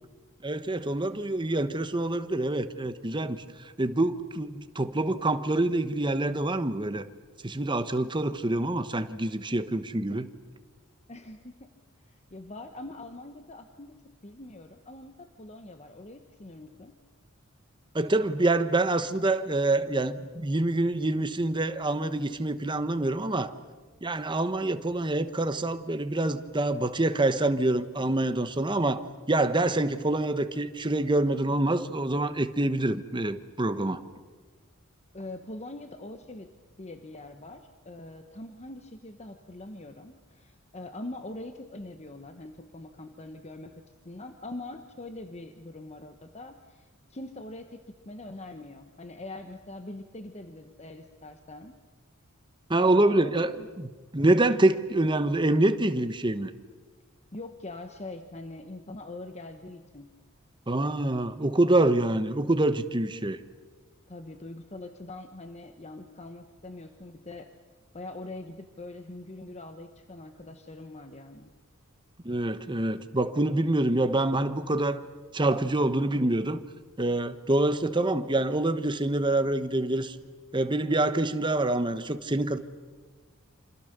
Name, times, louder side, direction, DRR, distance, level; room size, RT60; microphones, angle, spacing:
voice 1, 0.4-3.4 3.8-7.0 7.4-10.3 17.9-23.5 24.0-34.0 52.7-56.5 60.7-63.4 72.2-75.0 75.3-76.6 77.0-80.2 80.5-82.6, right 2 dB, 20° right, 10 dB, 1.1 m, -26 dB
voice 2, 11.1-11.7 12.0-17.0 35.1-36.5 36.8-51.8 52.8-53.5 57.3-60.1 64.1-67.5 67.9-71.5, left 2 dB, 30° left, 7 dB, 1.1 m, -43 dB
28.0 x 26.5 x 6.8 m, 1.4 s
head